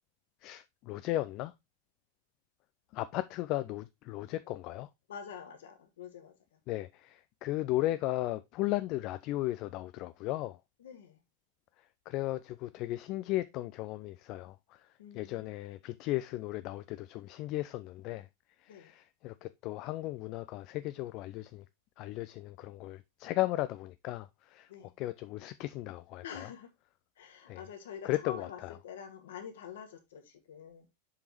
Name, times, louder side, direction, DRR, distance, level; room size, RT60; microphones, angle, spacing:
voice 1, 0.4-1.5 2.9-4.9 6.7-10.6 11.8-18.3 18.6-21.7 22.0-24.7 25.0-26.5 27.5-27.6 28.0-28.8, left 16 dB, 40° left, 0.4 m, -36 dB
voice 2, 5.1-6.6 10.8-11.2 15.0-15.4 18.7-18.9 24.7-24.9 26.2-26.7 27.2-30.9, left 7 dB, 60° left, 1.8 m, -46 dB
7.3 x 5.2 x 3.1 m
figure-of-eight pair, 90°, 0 cm